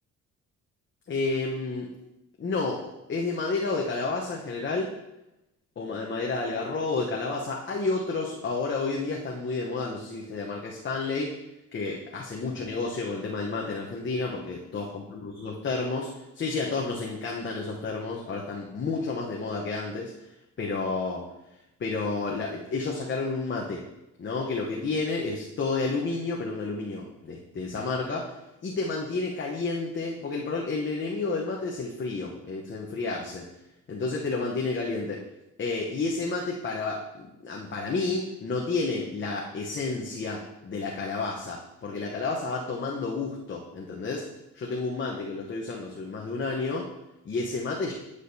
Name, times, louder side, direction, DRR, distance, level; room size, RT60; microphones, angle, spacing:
voice 1, 1.1-1.9 2.4-2.8 3.1-4.9 5.8-11.3 11.7-16.1 16.3-20.3 20.6-21.2 21.8-23.8 24.2-28.3 28.6-33.5 33.9-35.2 35.6-44.3 44.5-46.9 47.2-47.9, left 3 dB, 40° left, -2 dB, 0.9 m, -30 dB
10.0 x 4.9 x 2.7 m, 0.93 s
cardioid pair, 90°, 30 cm